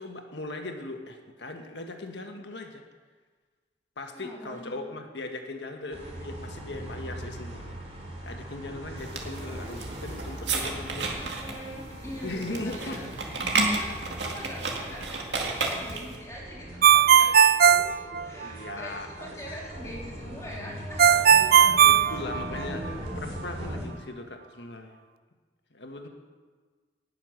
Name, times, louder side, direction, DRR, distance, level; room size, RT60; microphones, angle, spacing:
voice 1, 0.0-2.8 4.0-7.8 8.2-11.1 12.2-13.1 18.4-19.3 21.8-22.9 23.1-24.9 25.7-26.1, left 2 dB, 75° left, 4 dB, 1.5 m, -38 dB
voice 2, 4.1-4.8 11.2-13.1 13.6-15.1 15.6-17.3 17.6-21.4 26.0-26.1, equal, 15° left, -4 dB, 2.5 m, -43 dB
sound 1, 5.9-23.8, equal, 35° right, 3.4 m, -40 dB
sound 2, 9.0-16.2, right 3 dB, 80° right, 2.0 m, -32 dB
Ringtone, 16.8-18.7 21.0-22.9, right 8 dB, 55° right, 0.4 m, -18 dB
18.5 x 6.8 x 6.5 m, 1.4 s
head